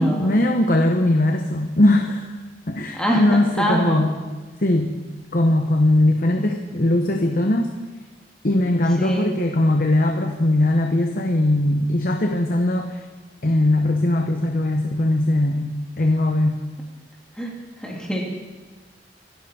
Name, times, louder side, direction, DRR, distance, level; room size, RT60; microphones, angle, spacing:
voice 1, 0.0-2.3 2.7-4.1 4.6-4.9 5.3-7.7 8.4-13.0 13.4-16.6, left 1 dB, 50° left, 3 dB, 1.0 m, -20 dB
voice 2, 2.9-4.0 9.0-9.3 17.4-18.2, equal, 5° left, -2 dB, 2.3 m, -24 dB
25.5 x 11.0 x 4.3 m, 1.3 s
head